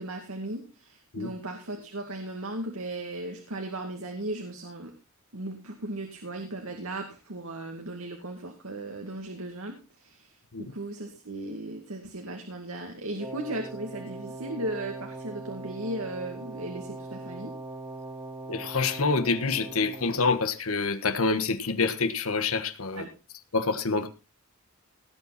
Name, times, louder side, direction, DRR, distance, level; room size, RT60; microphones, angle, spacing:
voice 1, 0.0-4.9 5.3-17.5 22.9-23.1, right 1 dB, 85° right, 4 dB, 2.2 m, -36 dB
Wind instrument woodwind instrument, 13.2-20.5, right 2 dB, 10° right, 1.2 m, -41 dB
voice 2, 18.5-23.1 23.5-24.1, left 4 dB, 80° left, 10 dB, 1.4 m, -27 dB
18.0 x 8.7 x 4.1 m, 0.30 s
head